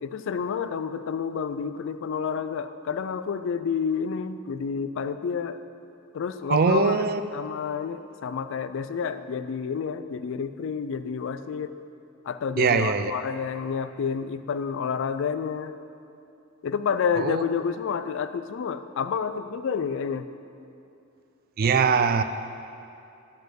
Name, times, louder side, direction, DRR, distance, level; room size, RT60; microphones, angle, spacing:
voice 1, 0.0-5.6 6.1-7.0 7.3-11.7 12.3-15.7 16.6-20.3, left 6 dB, 60° left, 11 dB, 0.3 m, -29 dB
voice 2, 6.5-7.2 12.6-13.1 17.2-17.4 21.6-22.2, right 5 dB, 45° right, 10 dB, 0.3 m, -21 dB
10.5 x 4.3 x 6.4 m, 2.7 s
head